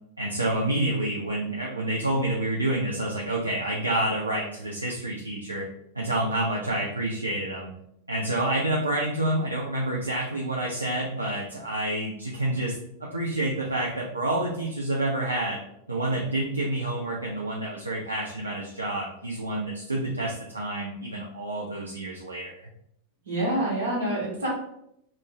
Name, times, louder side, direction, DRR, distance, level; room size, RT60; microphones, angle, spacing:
voice 1, 0.2-5.7 5.9-7.7 8.1-12.7 13.0-15.6 15.9-22.7, right 1 dB, 80° right, -2 dB, 0.4 m, -28 dB
voice 2, 23.2-24.5, right 1 dB, 65° right, -4 dB, 1.1 m, -27 dB
2.5 x 2.2 x 3.5 m, 0.77 s
figure-of-eight pair, 90°, 0 cm